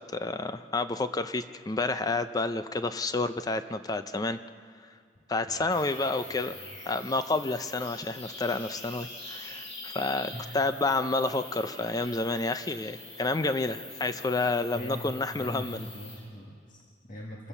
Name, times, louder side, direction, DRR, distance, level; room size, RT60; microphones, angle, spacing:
voice 1, 0.1-4.4 5.3-6.6 6.9-15.8, left 3 dB, 20° left, 11 dB, 0.4 m, -29 dB
voice 2, 5.4-5.9 6.3-6.4 10.3-10.6 14.7-15.1 15.3-17.5, equal, 45° left, -2 dB, 1.8 m, -42 dB
sound 1, 5.7-16.2, left 2 dB, 80° left, 7.5 m, -44 dB
25.5 x 15.5 x 7.1 m, 2.2 s
head